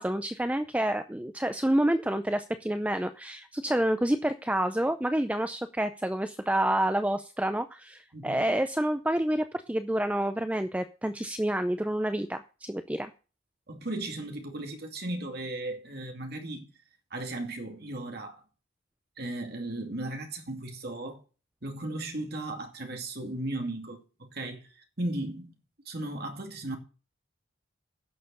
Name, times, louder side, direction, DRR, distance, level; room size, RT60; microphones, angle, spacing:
voice 1, 0.0-13.1, right 1 dB, 5° right, 0.4 m, -28 dB
voice 2, 8.1-8.5 13.7-16.7 17.1-18.4 19.2-21.2 21.6-25.6 25.9-26.8, right 1 dB, 50° right, 2.4 m, -36 dB
11.0 x 6.7 x 6.6 m
head